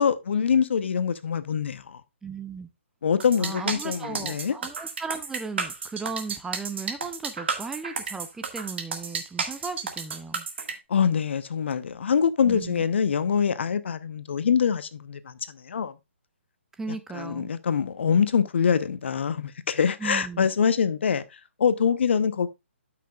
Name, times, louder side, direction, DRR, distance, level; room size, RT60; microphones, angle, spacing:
voice 1, 0.0-2.0 3.0-4.6 10.9-15.9 17.1-21.2 21.6-22.5, left 7 dB, 60° left, 0.8 m, -24 dB
voice 2, 2.2-2.7 3.4-10.5 12.4-12.8 16.8-17.5 20.0-20.5, right 4 dB, 5° right, 0.5 m, -36 dB
sound 1, 3.2-10.7, right 5 dB, 60° right, 1.7 m, -32 dB
12.5 x 6.0 x 2.3 m
figure-of-eight pair, 140°, 7 cm